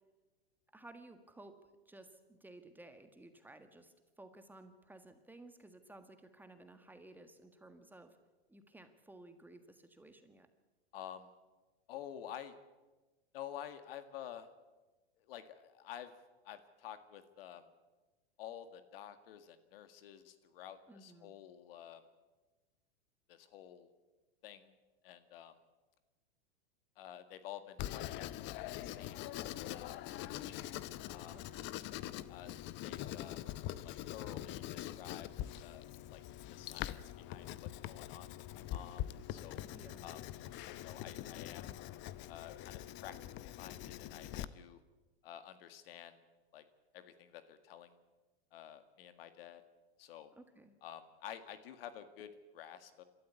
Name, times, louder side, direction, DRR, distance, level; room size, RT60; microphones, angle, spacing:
voice 1, 0.7-8.2 8.5-10.5 20.9-21.3 31.3-31.6 39.7-40.1 50.3-50.7, right 2 dB, 5° right, 8 dB, 1.6 m, -56 dB
voice 2, 10.9-11.3 11.9-12.6 13.3-14.5 15.2-16.1 16.4-17.7 18.4-22.0 23.3-23.9 24.4-24.8 25.0-25.6 27.0-29.3 29.7-30.7 31.1-31.4 32.3-32.6 32.8-33.4 33.8-35.3 35.6-36.2 36.5-39.6 40.0-40.2 40.8-41.7 42.3-44.8 45.2-46.2 46.5-46.6 46.9-48.0 48.5-49.6 50.0-50.3 50.8-53.0, left 10 dB, 65° left, 10 dB, 1.9 m, -50 dB
Writing, 27.8-44.4, left 13 dB, 35° left, 0.8 m, -44 dB
26.5 x 13.0 x 8.2 m, 1.2 s
hypercardioid pair, 120°, 31 cm